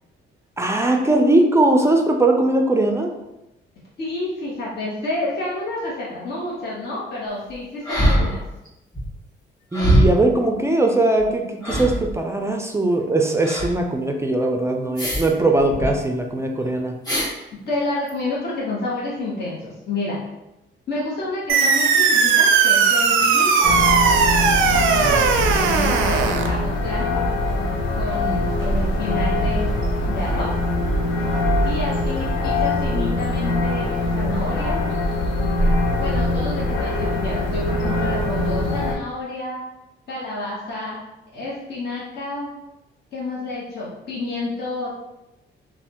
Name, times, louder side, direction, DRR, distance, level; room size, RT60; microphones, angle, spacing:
voice 1, 0.6-3.1 9.7-16.9 25.0-25.2, right 2 dB, 15° right, 3 dB, 0.4 m, -20 dB
voice 2, 4.0-8.4 17.7-20.2 20.9-23.9 25.0-27.2 27.9-29.7 30.1-30.5 31.6-34.8 36.0-39.6 40.1-41.0 41.3-42.5 43.1-44.9, left 2 dB, 55° left, -6 dB, 0.9 m, -29 dB
sound 1, 7.8-8.7 8.9-9.1 9.7-10.3 11.2-11.3 11.6-12.2 13.4-13.7 15.0-15.3 15.6-15.9 17.0-17.3 18.1-18.2, right 1 dB, 20° left, 1.5 m, -21 dB
sound 2, 21.5-26.5, right 6 dB, 90° right, 0.4 m, -18 dB
sound 3, 23.6-39.0, left 1 dB, 80° left, 0.6 m, -22 dB
3.1 x 2.1 x 2.8 m, 0.93 s
cardioid pair, 90°, 20 cm